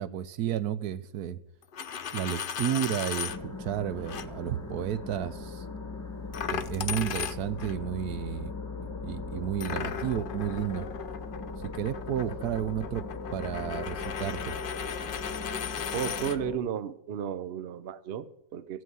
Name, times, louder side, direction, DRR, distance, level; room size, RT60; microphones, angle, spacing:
voice 1, 0.0-1.4 2.1-5.6 6.5-8.5 8.8-10.9 11.6-14.6, right 10 dB, 75° right, 1.2 m, -32 dB
Coin (dropping), 1.6-3.4 4.1-4.3 6.3-7.8 9.6-16.4, left 7 dB, 70° left, 0.5 m, -36 dB
sound 1, 3.3-16.6, left 3 dB, 10° left, 1.0 m, -39 dB
voice 2, 15.9-18.8, right 8 dB, 50° right, 0.8 m, -34 dB
15.0 x 6.4 x 9.4 m
omnidirectional pair, 1.7 m